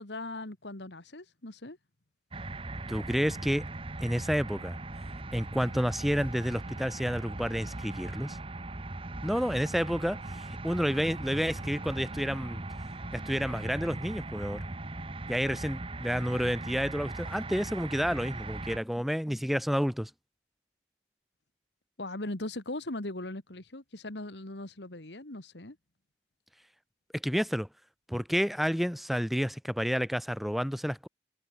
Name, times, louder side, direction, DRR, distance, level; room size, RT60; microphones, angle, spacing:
voice 1, 0.0-1.8 22.0-25.8, left 2 dB, 75° left, 2.4 m, -39 dB
sound 1, 2.3-18.8, right 2 dB, 30° right, 1.2 m, -39 dB
voice 2, 2.9-3.7 4.0-4.8 5.3-8.4 9.2-12.6 13.1-14.6 15.3-20.1 27.1-27.7 28.1-31.1, equal, ahead, 0.8 m, -30 dB
head